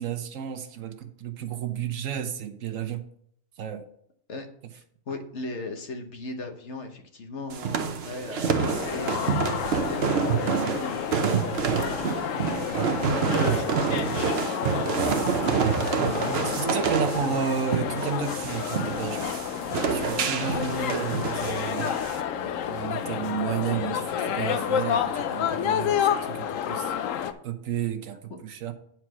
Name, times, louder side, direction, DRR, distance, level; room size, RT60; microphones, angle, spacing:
voice 1, 0.0-3.0 3.6-3.8 16.0-19.4 19.9-21.9 22.4-26.9 27.4-28.2 28.4-28.7, right 7 dB, 70° right, 8 dB, 1.2 m, -32 dB
voice 2, 4.7-11.4 11.7-17.4 28.3-28.4, left 3 dB, 60° left, 4 dB, 1.3 m, -38 dB
sound 1, 7.5-22.2, right 7 dB, 55° right, 0.9 m, -28 dB
sound 2, 8.4-27.3, left 9 dB, 75° left, 1.0 m, -30 dB
9.2 x 4.6 x 6.0 m, 0.69 s
omnidirectional pair, 1.4 m